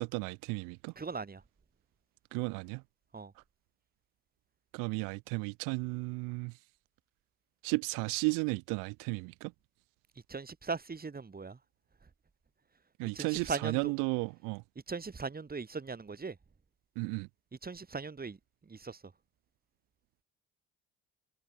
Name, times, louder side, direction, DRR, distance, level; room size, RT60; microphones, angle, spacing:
voice 1, 0.0-0.9 2.3-2.8 4.7-6.5 7.6-9.5 13.0-14.6 17.0-17.3, right 30 dB, 85° right, 1.1 m, -34 dB
voice 2, 1.0-1.4 3.1-3.3 10.3-11.6 13.1-13.9 14.9-16.3 17.6-18.4 18.7-19.0, right 4 dB, 30° right, 5.6 m, -39 dB
supercardioid pair, 70°, 32 cm